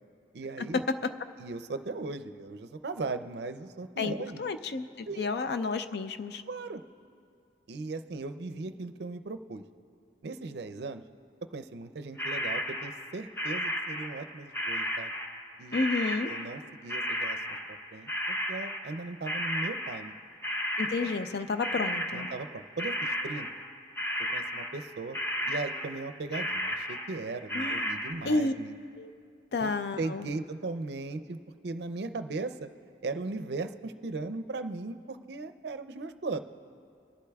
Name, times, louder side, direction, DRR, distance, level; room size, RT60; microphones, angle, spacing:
voice 1, 0.3-0.8 1.4-4.5 5.1-5.3 6.5-6.8 7.7-9.6 10.2-11.0 11.5-15.1 15.6-15.9 16.2-20.1 22.1-23.5 24.3-25.2 25.5-28.7 29.6-29.7 30.0-31.4 31.6-32.7 33.0-36.4, right 3 dB, 65° right, 10 dB, 0.5 m, -38 dB
voice 2, 4.4-6.4 15.7-16.3 20.8-22.3 27.5-27.8 28.3-28.5 29.0-29.1 29.5-30.3, left 3 dB, 60° left, 10 dB, 0.4 m, -31 dB
sound 1, 12.2-14.3 14.5-21.4 21.6-24.9 25.1-26.1 26.3-28.1, equal, 10° left, 0.6 m, -33 dB
25.5 x 11.5 x 2.3 m, 2.4 s
head